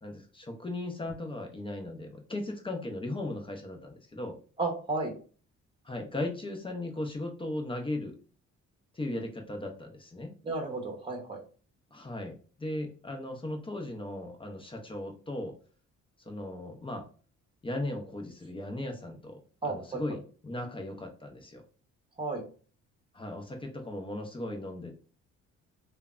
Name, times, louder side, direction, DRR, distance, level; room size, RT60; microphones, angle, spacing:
voice 1, 0.0-4.4 5.8-8.2 8.9-10.3 11.9-15.5 16.3-17.1 17.6-21.6 23.1-25.0, left 1 dB, 15° left, 4 dB, 0.6 m, -37 dB
voice 2, 4.6-5.1 10.4-11.4 19.6-20.0 22.2-22.4, right 3 dB, 15° right, 1 dB, 0.9 m, -33 dB
3.2 x 2.1 x 2.4 m, 0.39 s
cardioid pair, 90°, 30 cm